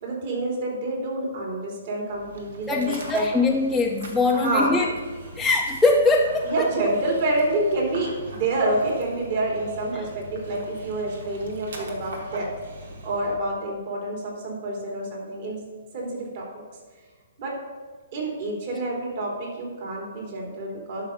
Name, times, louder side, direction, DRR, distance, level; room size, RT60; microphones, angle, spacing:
voice 1, 0.0-3.3 4.3-4.7 6.4-12.5 13.0-15.6 15.9-16.4 17.4-17.5 18.1-21.0, right 2 dB, 50° right, -2 dB, 3.5 m, -27 dB
Dog, 2.1-13.4, right 1 dB, 75° right, 1.8 m, -41 dB
voice 2, 2.7-5.0 5.3-6.7, left 3 dB, 5° left, -3 dB, 0.7 m, -22 dB
11.5 x 5.8 x 5.3 m, 1.4 s
hypercardioid pair, 135°, 0 cm